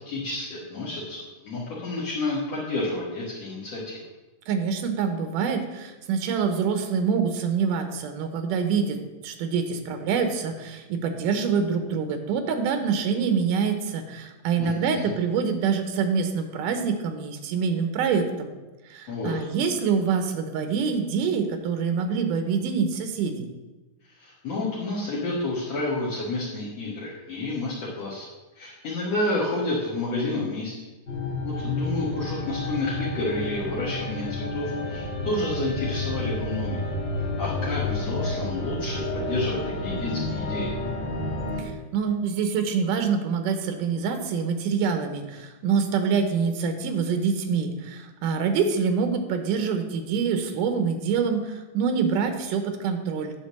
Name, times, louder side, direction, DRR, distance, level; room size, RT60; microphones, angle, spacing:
voice 1, 0.0-4.0 14.6-15.1 19.1-19.4 24.2-28.3 28.6-30.7 31.4-36.8 37.2-40.7, left 2 dB, 60° left, -6 dB, 2.4 m, -30 dB
voice 2, 4.5-18.5 18.9-23.5 41.6-53.3, right 6 dB, 80° right, 7 dB, 2.5 m, -26 dB
sound 1, 31.1-41.6, left 2 dB, 25° left, 1.7 m, -30 dB
10.0 x 3.8 x 7.3 m, 1.1 s
omnidirectional pair, 3.7 m